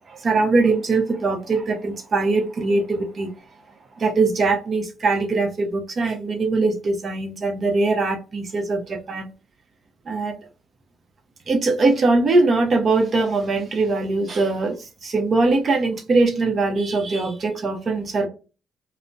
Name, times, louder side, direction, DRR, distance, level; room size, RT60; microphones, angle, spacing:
voice 1, 0.1-3.3 4.0-9.3 10.1-10.4 11.5-18.3, right 3 dB, 45° right, 0.7 m, -21 dB
2.6 x 2.1 x 3.3 m
cardioid pair, 90°, 0 cm